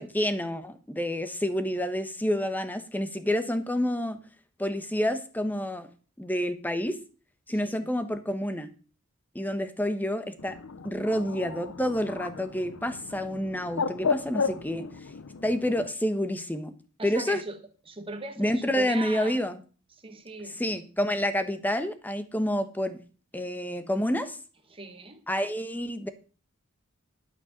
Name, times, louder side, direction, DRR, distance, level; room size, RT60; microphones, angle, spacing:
voice 1, 0.0-4.2 4.6-5.9 6.2-7.0 7.5-8.7 9.3-10.5 10.8-14.9 15.4-16.7 17.0-17.4 18.4-19.6 20.4-23.0 23.3-24.4 25.3-26.1, equal, 10° left, 10 dB, 1.1 m, -28 dB
Bird, 10.4-15.9, left 5 dB, 80° left, 0.7 m, -34 dB
voice 2, 17.0-17.6 17.9-19.4 20.0-20.6 24.7-25.2, right 3 dB, 25° right, 6 dB, 1.6 m, -39 dB
12.0 x 6.2 x 6.5 m, 0.37 s
head